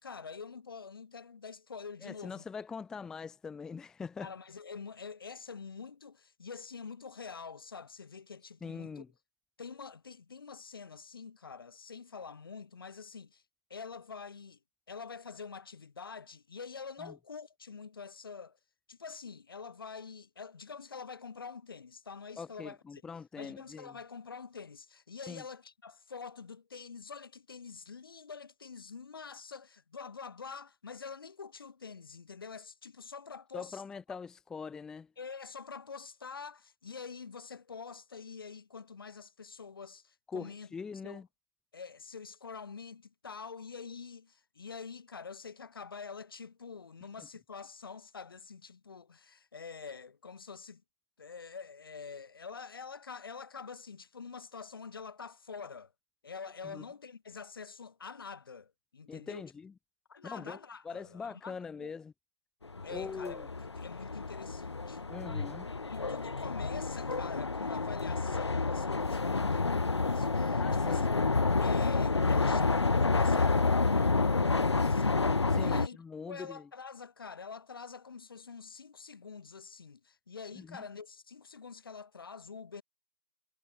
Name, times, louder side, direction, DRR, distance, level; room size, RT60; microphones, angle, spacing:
voice 1, 0.0-2.4 4.2-9.0 9.6-13.4 13.7-14.6 14.9-18.6 18.9-23.0 23.4-33.8 35.2-40.7 41.0-41.2 41.7-50.8 51.2-55.9 56.2-59.4 60.1-61.9 62.8-65.1 65.9-71.3 71.6-75.2 75.6-76.0 76.3-82.8, left 5 dB, 50° left, 5.1 m, -46 dB
voice 2, 2.0-4.3 8.6-9.1 17.0-17.1 22.4-24.0 25.3-25.4 33.5-35.1 40.3-41.3 47.2-47.3 56.6-56.8 59.1-59.7 60.2-60.6 60.8-62.1 62.9-63.5 65.1-65.7 70.6-71.1 75.5-76.7 80.6-80.8, left 5 dB, 5° left, 1.1 m, -42 dB
sound 1, 62.6-75.9, left 3 dB, 65° left, 1.8 m, -29 dB
figure-of-eight pair, 150°, 15 cm